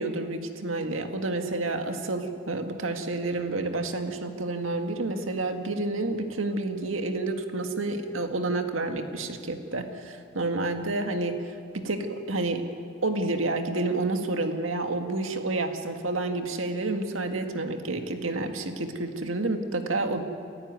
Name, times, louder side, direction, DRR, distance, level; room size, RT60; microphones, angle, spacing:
voice 1, 0.0-11.4 11.7-12.6 13.0-20.2, right 2 dB, 85° right, 6 dB, 2.0 m, -29 dB
28.5 x 15.0 x 9.5 m, 2.4 s
head